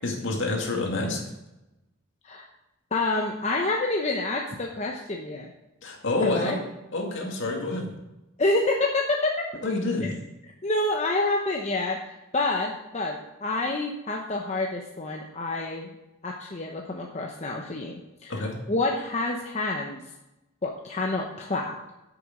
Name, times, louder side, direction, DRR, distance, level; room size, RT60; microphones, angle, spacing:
voice 1, 0.0-1.2 5.8-6.6 6.9-7.9 9.6-10.1 18.3-18.5, left 2 dB, 60° left, 1 dB, 2.2 m, -28 dB
voice 2, 2.9-5.5 6.2-6.6 8.4-9.4 10.0-10.1 10.6-15.9 16.2-18.0 18.2-18.3 18.7-20.0 20.6-21.9, left 2 dB, 30° left, 0 dB, 0.9 m, -28 dB
8.9 x 6.9 x 6.2 m, 0.97 s
head